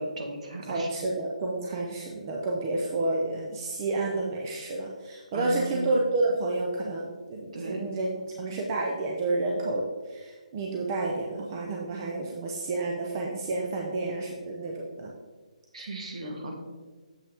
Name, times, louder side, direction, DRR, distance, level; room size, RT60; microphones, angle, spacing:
voice 1, 0.0-0.9 5.3-5.8 7.5-7.9 15.7-16.5, right 2 dB, 55° right, 2 dB, 1.5 m, -36 dB
voice 2, 0.7-15.1, right 2 dB, 25° right, -1 dB, 0.6 m, -30 dB
7.3 x 5.4 x 3.5 m, 1.4 s
hypercardioid pair, 165°, 4 cm